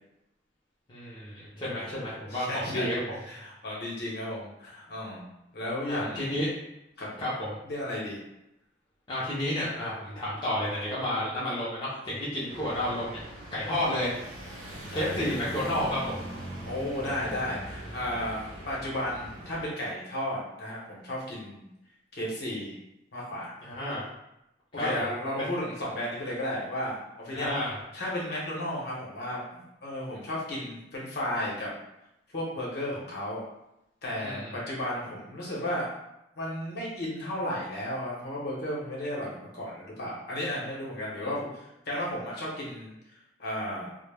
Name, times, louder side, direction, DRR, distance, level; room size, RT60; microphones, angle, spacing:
voice 1, 0.9-3.0 5.9-6.5 7.2-7.6 9.1-13.2 13.5-14.1 14.9-16.1 23.6-24.0 24.7-25.1 27.3-27.8 34.2-34.5 41.2-41.3, left 1 dB, 25° left, -9 dB, 0.5 m, -31 dB
voice 2, 2.3-2.9 3.3-5.3 5.5-6.4 7.0-7.1 7.6-8.2 14.9-15.2 16.7-21.6 22.1-22.8 23.1-23.5 24.7-27.0 27.2-27.5 27.9-31.7 32.3-33.4 34.0-35.9 36.4-42.9 43.4-43.9, left 1 dB, 60° left, -5 dB, 0.8 m, -34 dB
sound 1, 12.5-19.6, right 1 dB, 45° right, 0.7 m, -41 dB
2.1 x 2.0 x 3.2 m, 0.87 s
head